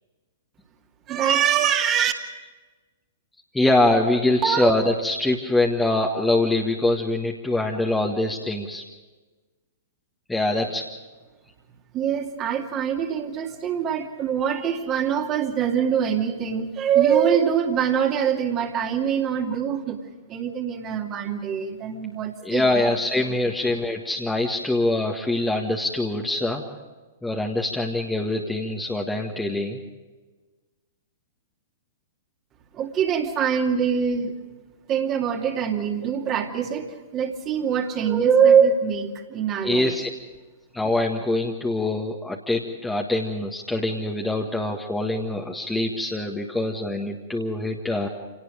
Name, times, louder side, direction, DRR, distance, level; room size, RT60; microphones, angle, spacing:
voice 1, 1.1-2.1 4.4-4.8 11.9-20.0 20.3-22.8 32.7-34.3 34.9-39.9, right 8 dB, 25° right, 2 dB, 2.5 m, -23 dB
voice 2, 3.5-8.8 10.3-10.8 22.4-26.6 27.2-29.8 39.6-40.1 40.7-48.1, left 2 dB, 5° left, 0 dB, 1.8 m, -24 dB
28.0 x 18.5 x 5.1 m, 1.3 s
figure-of-eight pair, 110°, 0 cm